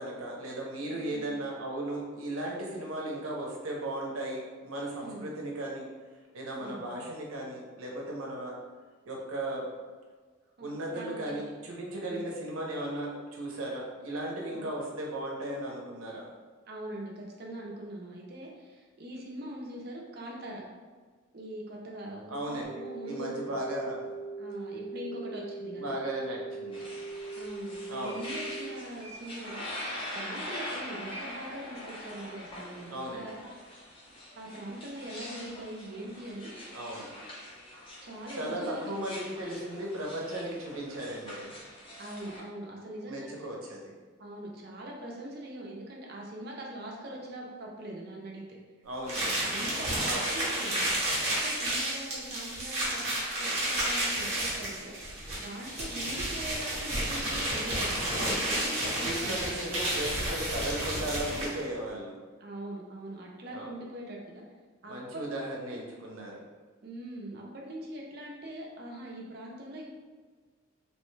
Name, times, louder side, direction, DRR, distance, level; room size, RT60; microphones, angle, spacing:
voice 1, 0.0-5.9 6.3-8.6 9.1-9.7 10.6-16.3 22.3-22.7 23.0-24.1 25.8-26.9 27.9-28.2 32.9-33.3 36.7-37.1 38.3-41.5 43.1-43.9 48.8-49.4 50.0-50.3 58.1-58.4 59.0-62.2 63.5-63.7 64.9-66.4, right 1 dB, 90° right, -2 dB, 0.7 m, -36 dB
voice 2, 0.9-1.3 5.0-5.3 6.6-6.8 10.6-11.4 12.0-12.2 14.5-14.6 16.7-20.6 21.3-23.3 24.4-26.0 27.3-33.4 34.4-36.5 38.0-38.9 42.0-43.5 44.2-48.4 49.4-50.9 51.4-57.9 58.1-59.6 62.4-64.4 64.8-64.9 65.7-65.8 66.8-69.8, right 1 dB, 50° right, -1 dB, 0.5 m, -42 dB
sound 1, 22.6-28.7, right 3 dB, 50° left, 0.9 m, -40 dB
sound 2, 26.7-42.4, left 1 dB, 25° left, 0.6 m, -43 dB
sound 3, 49.1-61.6, right 1 dB, 30° right, 0.9 m, -31 dB
3.0 x 2.1 x 3.1 m, 1.5 s
head